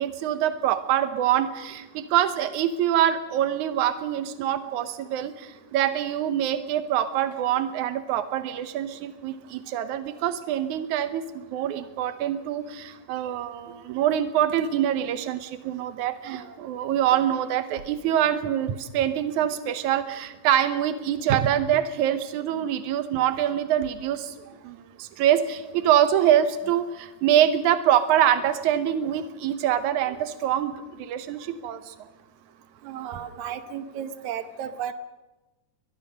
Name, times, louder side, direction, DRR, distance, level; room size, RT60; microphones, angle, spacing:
voice 1, 0.0-24.3 24.6-31.9, right 10 dB, 85° right, 10 dB, 1.7 m, -25 dB
voice 2, 32.8-34.9, right 8 dB, 70° right, 10 dB, 1.8 m, -32 dB
22.0 x 21.0 x 6.6 m, 1.1 s
omnidirectional pair, 4.7 m